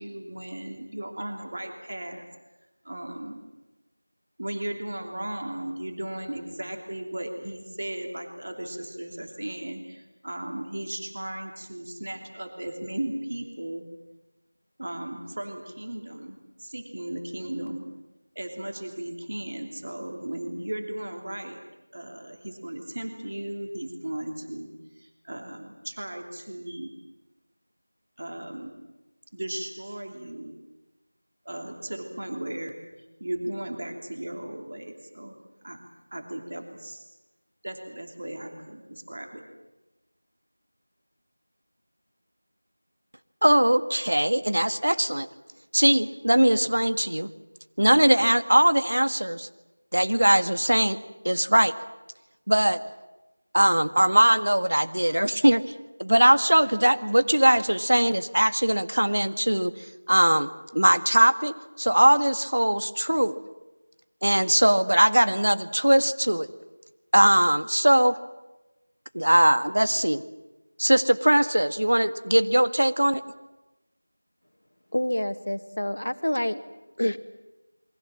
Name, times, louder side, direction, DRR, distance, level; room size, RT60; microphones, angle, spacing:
voice 1, 0.0-2.3 2.8-3.4 4.4-13.8 14.8-17.9 18.3-21.6 21.9-26.9 28.2-28.7 29.3-30.5 31.4-32.8 33.2-35.3 35.6-37.1 37.6-39.5, right 1 dB, 35° right, 4 dB, 2.9 m, -36 dB
voice 2, 43.4-45.3 45.7-47.3 47.8-49.5 49.9-51.0 51.2-51.7 52.5-52.8 53.5-55.6 56.0-59.7 60.1-63.4 64.2-66.5 67.1-68.2 69.1-70.2 70.8-73.2, right 1 dB, 75° right, 10 dB, 1.7 m, -21 dB
voice 3, 74.9-76.6 77.0-77.2, left 1 dB, 80° left, 10 dB, 1.9 m, -27 dB
28.5 x 23.5 x 7.6 m, 1.0 s
figure-of-eight pair, 180°, 0 cm